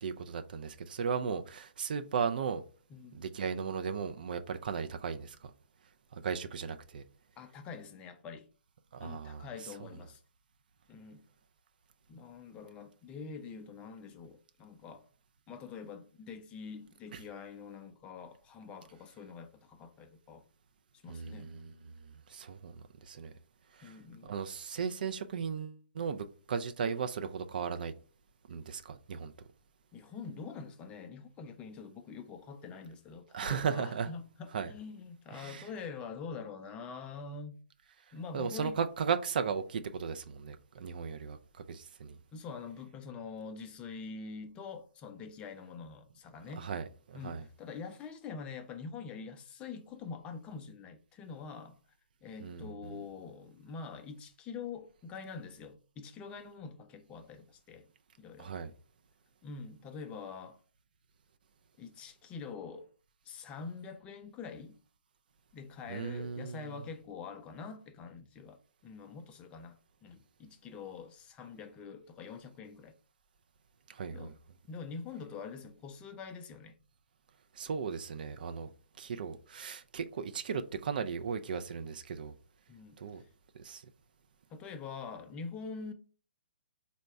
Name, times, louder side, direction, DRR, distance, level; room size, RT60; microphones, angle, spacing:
voice 1, 0.0-2.6 3.1-5.5 6.1-7.0 8.9-9.5 17.1-17.2 21.1-21.9 22.3-23.3 23.7-24.0 24.2-27.9 28.5-29.3 33.3-34.1 34.5-34.7 35.4-35.7 38.3-42.2 46.6-47.5 52.4-53.0 58.4-58.7 65.9-66.7 73.9-74.3 77.5-78.7 79.0-82.3 83.0-83.2 83.5-83.8, right 6 dB, 55° right, 0.4 m, -36 dB
voice 2, 2.9-3.2 7.4-8.5 9.0-10.2 10.9-11.2 12.1-15.1 15.5-20.4 20.9-21.5 23.8-24.3 29.9-37.6 38.1-38.8 42.3-46.7 47.1-51.8 52.2-57.9 58.2-58.5 59.4-60.6 61.8-62.9 63.2-64.8 65.5-72.9 74.1-74.3 74.7-76.8 82.7-83.2 84.5-85.9, left 5 dB, 20° left, 0.4 m, -45 dB
4.1 x 2.1 x 4.5 m
figure-of-eight pair, 130°, 6 cm